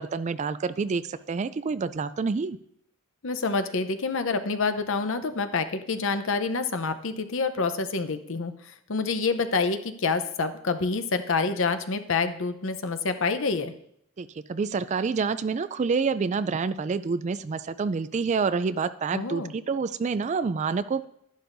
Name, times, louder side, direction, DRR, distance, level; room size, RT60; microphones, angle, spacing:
voice 1, 0.0-2.6 14.2-21.0, right 5 dB, 35° right, 14 dB, 0.3 m, -28 dB
voice 2, 3.2-13.7 19.1-19.6, left 4 dB, 65° left, 10 dB, 0.8 m, -27 dB
11.5 x 11.5 x 2.6 m, 0.73 s
head